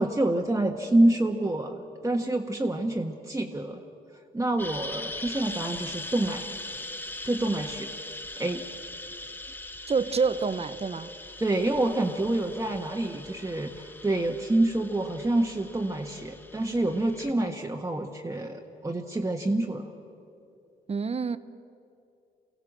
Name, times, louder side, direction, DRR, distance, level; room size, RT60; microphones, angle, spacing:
voice 1, 0.0-3.8 4.3-6.5 7.2-7.9 8.4-8.6 11.4-19.9, right 1 dB, 15° right, 1.3 m, -27 dB
sound 1, 4.6-17.3, left 2 dB, 10° left, 1.1 m, -41 dB
voice 2, 9.9-11.1 20.9-21.4, right 5 dB, 35° right, 0.9 m, -27 dB
24.0 x 16.0 x 7.6 m
supercardioid pair, 70°, 18 cm